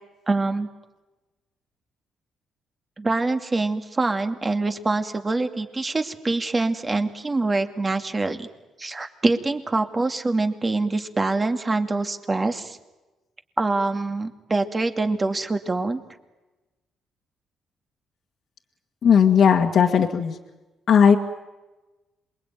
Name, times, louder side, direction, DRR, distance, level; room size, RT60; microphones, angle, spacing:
voice 1, 0.3-0.7 3.0-8.5 8.8-12.8 13.6-16.0, right 3 dB, 25° right, 7 dB, 2.5 m, -25 dB
voice 2, 19.0-20.4 20.9-21.2, left 7 dB, 60° left, 1 dB, 1.9 m, -16 dB
27.5 x 22.5 x 9.3 m, 1.1 s
cardioid pair, 90°, 0 cm